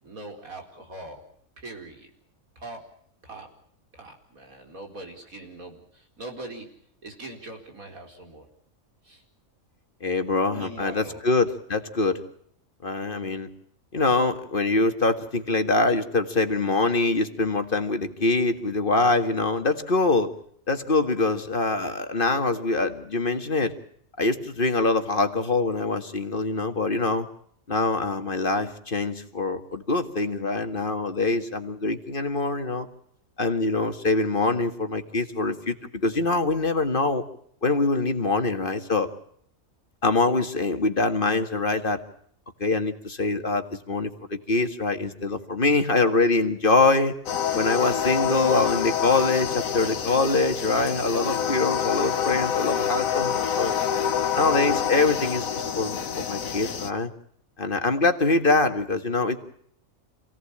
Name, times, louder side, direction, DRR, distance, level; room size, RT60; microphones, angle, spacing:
voice 1, 0.0-1.2 1.6-2.1 2.6-2.8 3.2-3.5 3.9-6.7 7.0-8.5 9.0-9.2 10.5-11.2, right 2 dB, 80° right, 2 dB, 4.9 m, -41 dB
voice 2, 10.0-12.2 12.8-13.5 13.9-20.3 20.7-23.7 24.2-27.3 27.7-32.9 33.4-35.8 36.0-37.2 37.6-39.1 40.0-42.0 42.6-47.1 47.5-53.8 54.4-57.1 57.6-59.4, left 3 dB, 40° left, 7 dB, 1.9 m, -24 dB
sound 1, 47.3-56.9, left 8 dB, 75° left, 1.6 m, -27 dB
28.0 x 17.5 x 8.7 m, 0.65 s
omnidirectional pair, 1.4 m